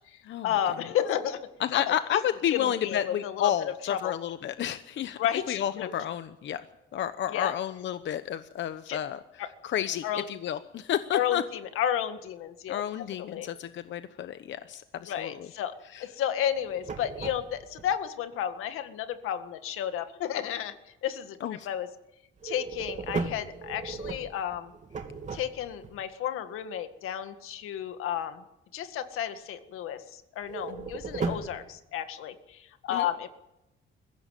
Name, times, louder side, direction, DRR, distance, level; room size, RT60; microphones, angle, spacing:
voice 1, 0.1-1.9 2.5-3.5 3.9-4.1 5.2-5.9 7.3-7.5 8.9-9.0 9.4-9.5 10.0-10.3 11.1-12.8 13.2-13.5 15.1-15.7 16.0-20.7 21.0-21.9 22.4-24.7 25.3-28.4 28.7-33.3, left 10 dB, 90° left, 9 dB, 1.8 m, -32 dB
voice 2, 1.6-5.2 5.5-6.6 6.9-9.2 9.6-11.4 12.7-15.5 15.9-16.0 21.4-21.7 30.7-30.9 32.9-33.1, left 10 dB, 60° left, 11 dB, 0.9 m, -31 dB
sound 1, 16.6-17.9 22.4-25.9 30.4-31.6, right 4 dB, 35° right, 2.8 m, -36 dB
22.0 x 16.0 x 9.2 m, 0.92 s
cardioid pair, 120°, 21 cm